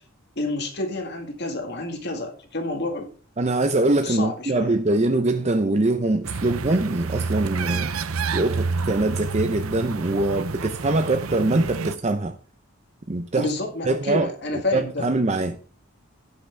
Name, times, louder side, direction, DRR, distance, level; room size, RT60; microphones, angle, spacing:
voice 1, 0.4-3.1 4.0-4.8 13.4-15.1, left 2 dB, 55° left, 1.7 m, -29 dB
voice 2, 3.4-7.9 8.3-12.4 13.1-13.5 13.8-14.3 14.7-15.6, right 2 dB, 30° right, 0.7 m, -23 dB
sound 1, 6.3-12.0, right 4 dB, 85° right, 0.7 m, -29 dB
17.5 x 5.9 x 3.4 m
head